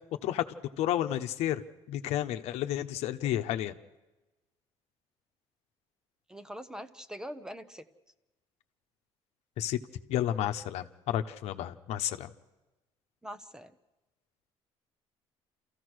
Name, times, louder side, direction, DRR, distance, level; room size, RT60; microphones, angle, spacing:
voice 1, 0.8-1.6 1.9-3.7 9.6-9.8 10.1-12.3, left 12 dB, 75° left, 8 dB, 1.0 m, -31 dB
voice 2, 6.3-7.8 13.2-13.7, equal, 5° right, 13 dB, 0.8 m, -43 dB
28.0 x 14.5 x 6.4 m, 1.1 s
cardioid pair, 130°, 11 cm